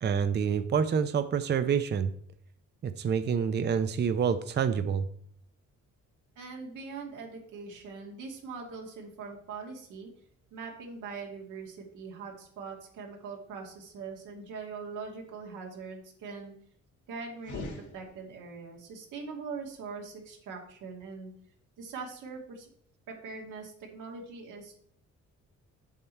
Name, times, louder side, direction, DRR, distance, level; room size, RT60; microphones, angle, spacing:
voice 1, 0.0-2.1 2.8-5.1, right 7 dB, 35° right, 10 dB, 0.6 m, -27 dB
voice 2, 6.4-10.1 10.5-16.6 17.1-21.3 21.8-22.7 23.1-24.7, right 4 dB, 90° right, 0 dB, 2.2 m, -42 dB
sound 1, 17.4-18.7, left 2 dB, 75° left, 2.5 m, -42 dB
7.3 x 6.9 x 4.4 m, 0.64 s
cardioid pair, 90°, 30 cm